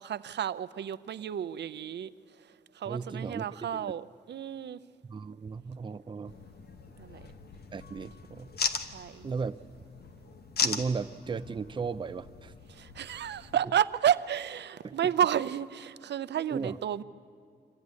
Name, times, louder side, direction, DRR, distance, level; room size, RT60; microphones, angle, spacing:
voice 1, 0.0-2.1 2.7-4.8 7.0-7.2 8.9-9.2 12.7-17.0, right 9 dB, 80° right, 15 dB, 0.6 m, -31 dB
voice 2, 2.9-3.9 5.0-6.3 7.7-8.5 9.2-9.6 10.6-12.5 14.8-15.0 16.5-16.8, right 5 dB, 30° right, 11 dB, 0.5 m, -36 dB
sound 1, 6.3-13.6, left 4 dB, 65° left, 1.1 m, -38 dB
25.0 x 14.5 x 9.5 m, 2.4 s
wide cardioid pair, 150°, 17 cm